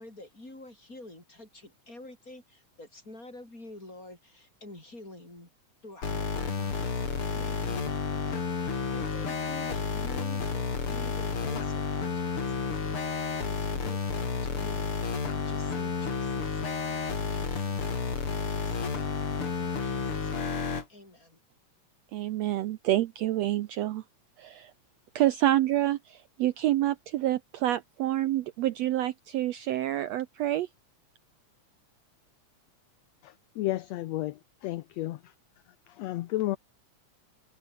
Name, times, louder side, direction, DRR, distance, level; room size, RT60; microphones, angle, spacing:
voice 1, 0.0-5.5 5.8-13.0 13.4-14.9 15.3-16.7 17.3-17.9 18.5-19.1 19.6-20.6 20.9-21.4, left 2 dB, 25° left, 7.8 m, -48 dB
sound 1, 6.0-20.8, left 5 dB, 45° left, 4.0 m, -31 dB
voice 2, 22.1-24.0 24.4-24.7 25.1-30.7, right 14 dB, 70° right, 1.7 m, -28 dB
voice 3, 33.2-35.2 36.0-36.6, left 16 dB, 70° left, 1.7 m, -32 dB
omnidirectional pair, 3.6 m